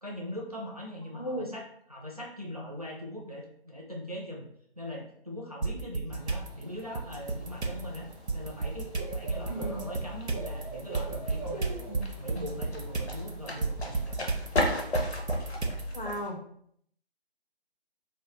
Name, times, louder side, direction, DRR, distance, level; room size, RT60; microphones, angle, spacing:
voice 1, 0.0-4.5 4.8-8.1 8.3-11.8 12.2-14.2, left 1 dB, 40° right, -2 dB, 0.4 m, -41 dB
voice 2, 1.1-1.5 9.5-9.8 11.9-12.1 15.9-16.4, equal, 55° left, 1 dB, 0.5 m, -35 dB
sound 1, 5.6-6.5 6.9-16.1, right 3 dB, 90° right, 0.5 m, -33 dB
Bird / Cricket, 6.2-14.8, right 2 dB, 20° left, 0.7 m, -45 dB
sound 2, 7.1-16.3, left 1 dB, 85° left, 0.7 m, -37 dB
2.1 x 2.1 x 2.9 m, 0.67 s
figure-of-eight pair, 155°, 32 cm